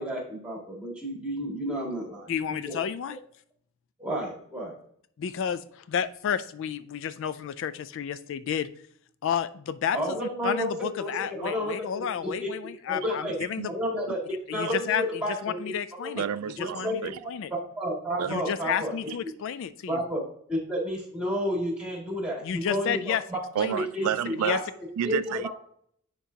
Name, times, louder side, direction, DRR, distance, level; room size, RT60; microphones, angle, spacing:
voice 1, 0.0-2.8 4.0-4.8 9.9-12.1 12.4-12.5 12.9-13.3 13.7-14.2 14.5-15.4 16.0-16.2 16.6-18.9 19.9-20.2 20.5-23.4 23.7-24.1 24.5-24.6 25.0-25.5, equal, 5° right, 2.1 m, -31 dB
voice 2, 2.3-3.2 5.2-8.7 9.2-13.7 14.5-15.0 15.4-16.3 16.6-17.5 18.3-20.0 22.4-23.2 23.6-23.9 24.4-24.6, left 8 dB, 60° left, 0.3 m, -31 dB
voice 3, 16.2-17.2 18.2-18.7 19.1-19.2 23.6-24.6 25.0-25.5, right 9 dB, 85° right, 0.3 m, -30 dB
10.0 x 4.5 x 2.7 m
head